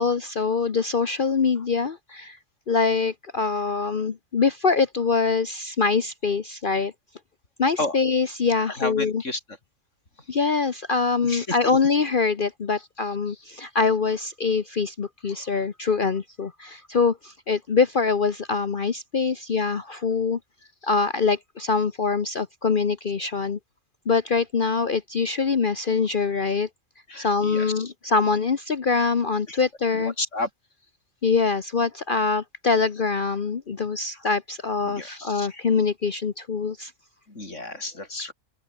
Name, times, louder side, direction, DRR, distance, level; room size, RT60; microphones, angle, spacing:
voice 1, 0.0-2.4 2.7-6.9 7.6-9.2 10.3-20.4 20.8-23.6 24.1-26.7 27.2-30.1 31.2-36.9, left 4 dB, 45° left, 1.1 m, -24 dB
voice 2, 8.7-9.4 11.2-11.8 15.3-15.5 27.1-27.9 29.5-29.6 29.9-30.5 34.1-34.2 34.9-35.7 37.3-38.3, left 2 dB, 65° left, 5.4 m, -32 dB
open air
omnidirectional pair, 1.4 m